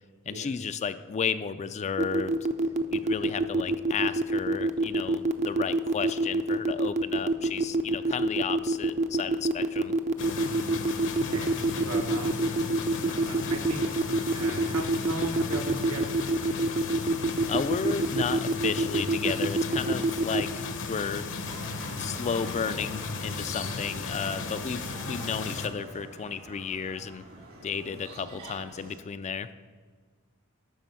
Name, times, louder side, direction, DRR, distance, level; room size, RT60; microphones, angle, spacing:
voice 1, 0.3-2.3 2.9-9.9 17.5-21.3 21.9-27.3 27.6-29.5, left 6 dB, 30° left, 12 dB, 0.3 m, -33 dB
sound 1, 2.0-20.4, right 2 dB, 35° right, 0.5 m, -26 dB
voice 2, 3.2-3.6 11.2-12.5 13.2-16.1, right 2 dB, 80° right, 2 dB, 1.4 m, -38 dB
sound 2, 10.2-25.7, left 4 dB, 60° left, 0.8 m, -35 dB
sound 3, 21.4-29.0, right 1 dB, 65° right, 2.0 m, -45 dB
12.0 x 4.4 x 7.0 m, 1.5 s
head